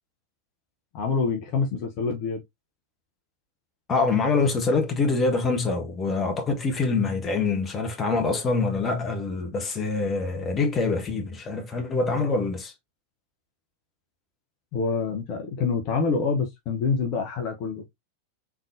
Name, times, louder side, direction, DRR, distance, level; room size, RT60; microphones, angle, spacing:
voice 1, 0.9-2.4 14.7-17.9, left 5 dB, 40° left, 1.0 m, -26 dB
voice 2, 3.9-12.7, left 3 dB, 20° left, 1.2 m, -25 dB
3.8 x 3.6 x 2.6 m
figure-of-eight pair, 90°, 0 cm